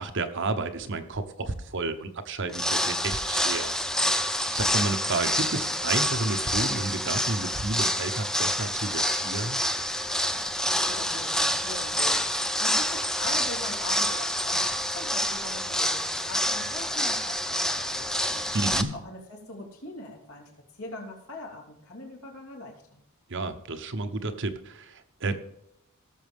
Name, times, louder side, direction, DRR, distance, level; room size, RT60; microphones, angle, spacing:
voice 1, 0.0-3.7 4.5-9.6 18.5-18.9 23.3-25.4, right 3 dB, 55° right, 8 dB, 1.0 m, -31 dB
sound 1, 2.5-18.8, equal, ahead, 0.5 m, -27 dB
voice 2, 10.3-18.5 18.9-23.0, left 2 dB, 70° left, 0 dB, 3.2 m, -42 dB
18.0 x 7.2 x 3.6 m, 0.80 s
head